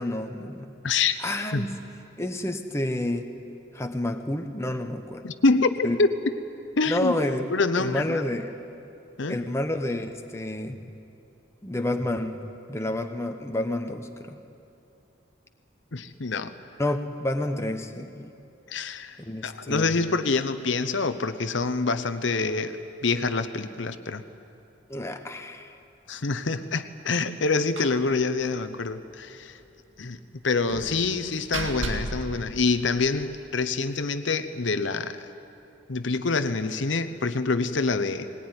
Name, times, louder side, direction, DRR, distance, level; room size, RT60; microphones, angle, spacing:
voice 1, 0.0-0.7 1.2-1.9 2.2-3.3 3.7-5.3 5.8-6.0 6.9-7.5 7.7-8.6 9.3-10.9 11.6-14.4 16.8-18.3 19.2-20.1 24.9-25.8, left 1 dB, 15° left, 5 dB, 1.0 m, -29 dB
voice 2, 0.8-1.2 1.5-1.7 5.2-6.1 6.8-7.2 7.5-8.2 9.2-9.4 15.9-16.5 18.7-24.2 26.1-29.6 30.0-35.3 35.9-38.3, left 3 dB, 65° left, 10 dB, 0.8 m, -26 dB
Slam, 27.8-28.1 28.4-28.5 28.8-28.9 30.7-33.3, right 2 dB, 75° right, 2.1 m, -35 dB
20.0 x 19.0 x 9.7 m, 2.7 s
head